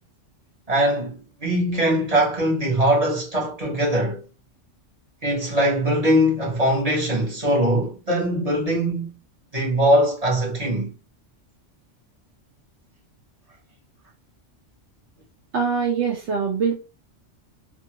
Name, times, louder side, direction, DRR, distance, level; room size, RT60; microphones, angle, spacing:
voice 1, 0.7-4.2 5.2-9.1 9.5-10.9, equal, 35° right, 0.8 m, -21 dB
voice 2, 15.5-16.7, right 6 dB, 70° right, 0.8 m, -23 dB
2.5 x 2.3 x 2.8 m
omnidirectional pair, 1.3 m